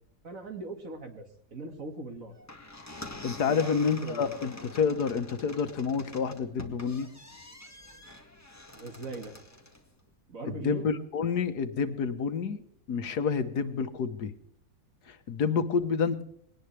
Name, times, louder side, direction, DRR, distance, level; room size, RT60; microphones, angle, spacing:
voice 1, 0.2-1.2 1.5-2.3 3.4-4.3 8.7-9.3 10.3-10.9, right 2 dB, 55° right, 5 dB, 2.6 m, -40 dB
sound 1, 2.3-9.9, left 1 dB, 10° left, 1.8 m, -46 dB
voice 2, 3.2-7.1 10.6-12.6 12.9-14.3 15.1-16.2, left 6 dB, 85° left, 10 dB, 1.8 m, -29 dB
21.0 x 18.5 x 3.4 m, 0.69 s
omnidirectional pair, 1.7 m